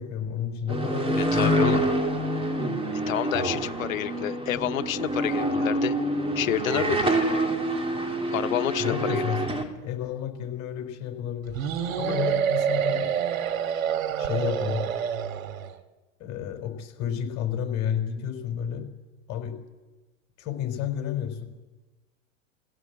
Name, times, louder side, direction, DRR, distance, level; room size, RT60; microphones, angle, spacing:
voice 1, 0.0-1.8 8.8-11.6 12.0-13.1 14.2-14.8 16.2-18.9 19.3-19.6 20.4-21.6, left 9 dB, 45° left, 5 dB, 4.4 m, -31 dB
sound 1, 0.7-9.6, right 1 dB, 15° right, 3.0 m, -26 dB
voice 2, 1.2-1.8 2.9-6.0 6.3-7.2 8.3-9.3, left 13 dB, 85° left, 10 dB, 1.1 m, -29 dB
sound 2, 11.5-15.7, right 8 dB, 80° right, 2.6 m, -27 dB
23.0 x 16.0 x 8.3 m, 1.2 s
supercardioid pair, 120°, 40 cm